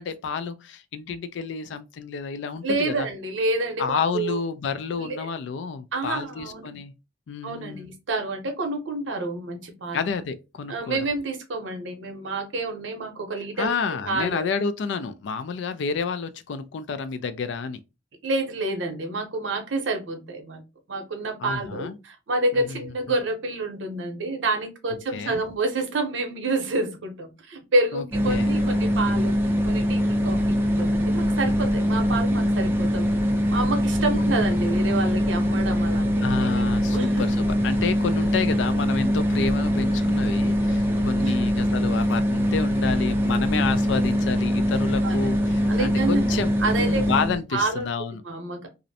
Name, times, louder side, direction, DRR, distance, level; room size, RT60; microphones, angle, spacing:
voice 1, 0.0-3.1 3.8-6.9 7.3-7.9 9.9-11.0 13.6-17.8 21.4-22.0 22.5-22.8 25.1-25.4 27.9-28.6 34.1-34.7 36.2-46.5 46.8-48.2, left 5 dB, 65° left, 0.3 m, -30 dB
voice 2, 2.6-4.4 4.9-5.3 5.9-6.8 7.4-10.0 10.7-14.5 18.2-20.6 20.9-33.1 33.5-37.3 40.7-41.4 45.0-45.2 45.7-47.1 47.5-47.9 48.2-48.7, right 2 dB, 80° right, 0.7 m, -28 dB
sound 1, 28.1-47.4, equal, 10° right, 0.4 m, -23 dB
2.5 x 2.0 x 2.6 m
head